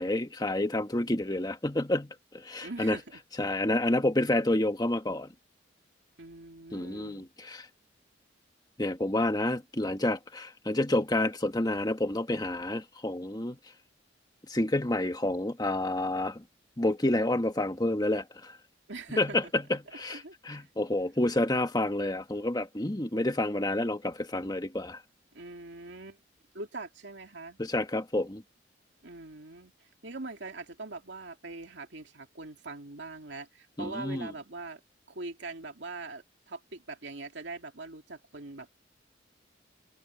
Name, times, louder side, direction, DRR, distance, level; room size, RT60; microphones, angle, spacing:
voice 1, 0.0-3.0 3.4-5.3 6.7-7.7 8.8-13.6 14.5-16.4 16.8-18.6 19.2-25.0 27.6-28.4 33.8-34.3, left 1 dB, 20° left, 1.5 m, -29 dB
voice 2, 2.6-3.2 6.2-7.3 18.9-19.5 19.9-20.7 25.3-26.2 26.5-27.6 29.0-34.8 35.1-38.7, right 3 dB, 70° right, 2.5 m, -42 dB
head